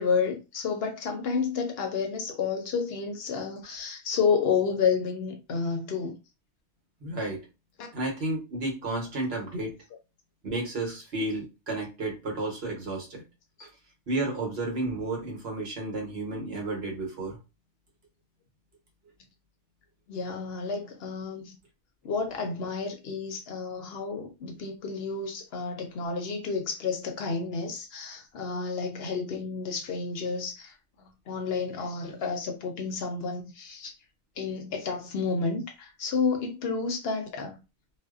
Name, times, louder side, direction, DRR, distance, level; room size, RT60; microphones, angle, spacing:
voice 1, 0.0-6.1 7.8-7.9 13.6-13.7 20.1-21.6 22.0-33.9 34.4-37.6, left 5 dB, 65° left, 0.8 m, -30 dB
voice 2, 7.0-7.5 7.9-9.8 10.4-13.2 13.6-13.7 14.1-17.4, right 2 dB, 65° right, 1.1 m, -32 dB
2.5 x 2.1 x 2.3 m
omnidirectional pair, 1.2 m